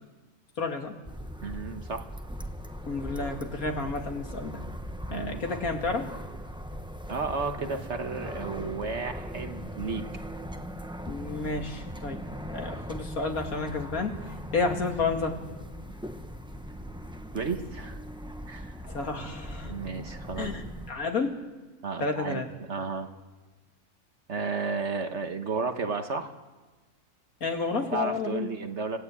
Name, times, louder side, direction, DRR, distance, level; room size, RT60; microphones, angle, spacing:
voice 1, 0.6-0.9 2.9-4.6 5.1-6.0 11.0-12.2 12.5-14.2 14.5-15.4 18.9-19.7 20.4-21.3 22.0-22.5 27.4-28.5, left 4 dB, 65° left, 3 dB, 2.7 m, -31 dB
sound 1, 1.0-20.9, equal, 5° right, 0.6 m, -39 dB
voice 2, 1.4-2.1 5.1-5.4 7.1-10.0 17.3-18.0 18.5-18.8 19.6-20.5 21.8-22.4 22.7-23.1 24.3-26.3 27.9-29.0, right 4 dB, 50° right, 6 dB, 1.5 m, -32 dB
25.5 x 17.0 x 8.4 m, 1.3 s
omnidirectional pair, 1.6 m